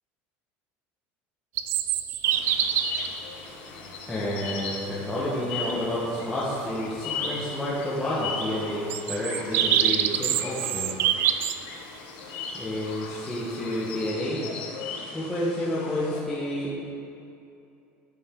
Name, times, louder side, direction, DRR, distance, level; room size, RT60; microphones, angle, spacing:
sound 1, 1.6-3.1 4.2-4.3 8.9-11.6, right 11 dB, 45° right, 0.3 m, -25 dB
sound 2, 2.2-16.2, left 5 dB, 90° left, 1.1 m, -38 dB
voice 1, 4.1-10.9 12.5-14.4 15.0-16.9, left 1 dB, 10° left, -9 dB, 1.2 m, -30 dB
12.5 x 5.2 x 3.7 m, 2.7 s
cardioid pair, 155°, 5 cm